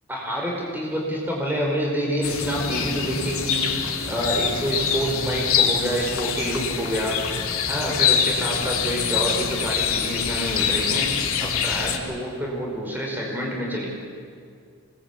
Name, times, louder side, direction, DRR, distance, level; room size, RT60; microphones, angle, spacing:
voice 1, 0.1-7.2 7.7-13.9, equal, 10° right, -2 dB, 4.9 m, -27 dB
sound 1, 2.2-12.0, left 7 dB, 80° left, 2.9 m, -25 dB
25.5 x 20.0 x 8.4 m, 2.3 s
head